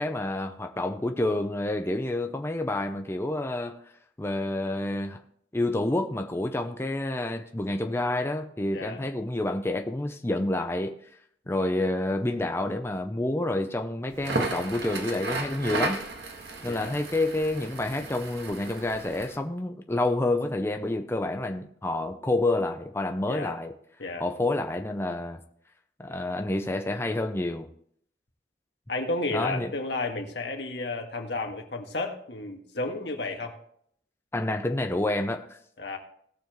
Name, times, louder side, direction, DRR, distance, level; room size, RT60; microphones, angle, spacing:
voice 1, 0.0-3.8 4.2-5.2 5.5-11.0 11.5-16.0 16.6-23.7 24.2-25.4 26.0-27.7 29.3-29.7 34.3-35.5, left 2 dB, 15° left, 0.6 m, -28 dB
voice 2, 8.7-9.0 16.7-17.0 23.3-23.6 24.0-24.2 28.9-33.6 35.8-36.0, left 2 dB, 75° left, 1.8 m, -32 dB
Crackle, 14.1-19.4, right 2 dB, 75° right, 1.8 m, -34 dB
18.0 x 6.9 x 3.1 m
head